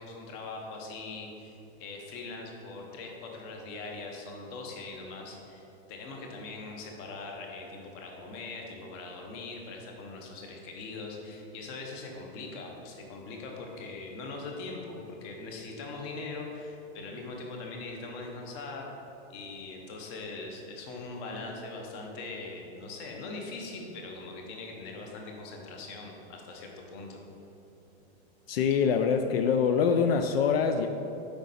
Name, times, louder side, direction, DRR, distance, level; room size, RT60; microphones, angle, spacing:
voice 1, 0.0-1.5 1.8-18.9 19.3-27.2, left 3 dB, 25° left, 1 dB, 0.8 m, -41 dB
voice 2, 28.5-30.9, left 6 dB, 65° left, 7 dB, 0.5 m, -24 dB
8.0 x 5.1 x 4.1 m, 2.9 s
supercardioid pair, 175°, 31 cm